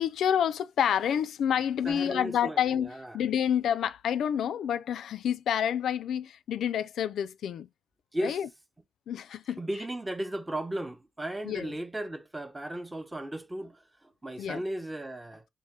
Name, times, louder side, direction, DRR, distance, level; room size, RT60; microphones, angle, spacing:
voice 1, 0.0-7.7 8.2-8.5 9.1-9.6 11.4-11.7 14.4-14.6, left 9 dB, 70° left, 0.3 m, -28 dB
voice 2, 1.8-3.2 8.1-8.4 9.6-15.4, right 1 dB, 15° right, 0.5 m, -36 dB
4.2 x 2.5 x 3.6 m
cardioid pair, 75°, 0 cm